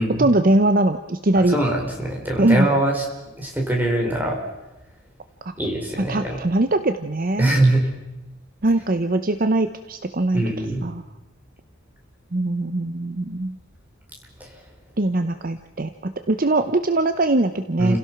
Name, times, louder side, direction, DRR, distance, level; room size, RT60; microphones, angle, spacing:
voice 1, 0.2-1.6 2.4-2.7 6.0-7.6 8.6-10.4 10.8-11.0 12.3-13.6 15.0-18.0, right 2 dB, 40° right, 9 dB, 0.8 m, -21 dB
voice 2, 1.3-3.0 3.4-4.4 5.6-6.4 7.4-7.9 10.3-10.8 14.4-14.5 17.8-18.0, right 1 dB, 10° right, 0 dB, 4.3 m, -22 dB
29.5 x 16.5 x 6.0 m, 0.98 s
head